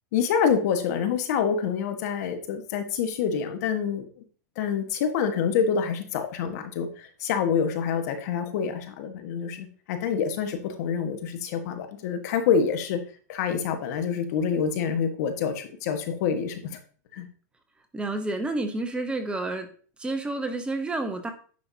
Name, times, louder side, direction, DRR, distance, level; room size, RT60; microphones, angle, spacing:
voice 1, 0.1-4.1 4.6-13.0 13.3-16.8 17.1-17.3, left 7 dB, 60° left, 7 dB, 1.5 m, -27 dB
voice 2, 17.9-19.7 20.0-21.3, right 2 dB, 10° right, 6 dB, 0.9 m, -29 dB
9.6 x 5.7 x 2.8 m, 0.43 s
supercardioid pair, 140°, 10 cm